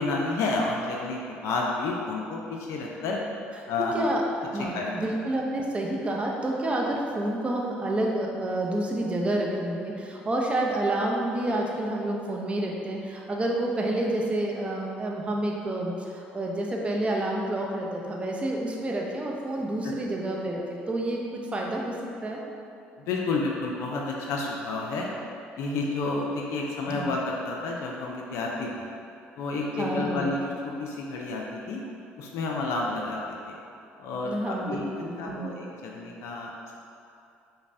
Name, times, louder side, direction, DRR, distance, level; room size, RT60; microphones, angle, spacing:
voice 1, 0.0-3.2 3.7-3.9 4.7-4.9 19.8-19.9 23.0-25.1 25.6-28.9 29.4-31.8 32.2-33.6 34.0-34.9 35.2-36.7, left 3 dB, 70° left, -1 dB, 0.4 m, -30 dB
voice 2, 3.8-4.2 4.5-21.9 22.2-22.4 26.9-27.1 29.8-30.3 34.2-35.6, right 1 dB, 25° right, -1 dB, 0.5 m, -29 dB
5.1 x 2.1 x 2.6 m, 2.6 s
hypercardioid pair, 65°, 5 cm